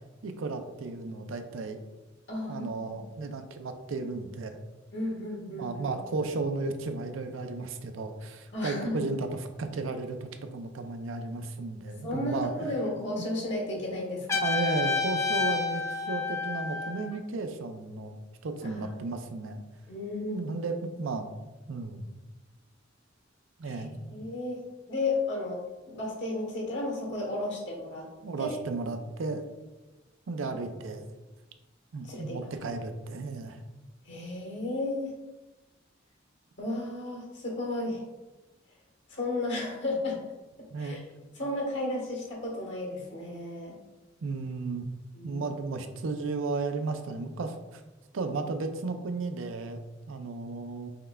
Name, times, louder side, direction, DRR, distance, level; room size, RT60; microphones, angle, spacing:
voice 1, 0.2-1.8 2.5-4.6 5.5-12.7 13.2-13.3 14.3-19.6 20.2-21.3 21.7-22.1 23.6-24.0 28.2-29.4 30.3-31.0 31.9-33.6 40.7-41.0 44.2-44.9 45.2-47.8 48.1-50.9, right 3 dB, 80° right, 7 dB, 0.5 m, -34 dB
voice 2, 2.3-3.1 4.9-5.8 8.5-9.0 12.0-14.4 18.6-18.9 19.9-20.5 23.6-23.8 24.1-24.6 24.9-25.6 25.9-28.1 28.4-28.5 32.0-32.7 34.0-35.1 36.6-38.0 39.1-40.2 40.8-41.0 41.4-43.8 45.1-45.5, left 2 dB, 65° left, -1 dB, 1.3 m, -33 dB
Trumpet, 14.3-17.1, left 4 dB, 15° left, 0.4 m, -29 dB
5.6 x 3.3 x 2.2 m, 1.1 s
head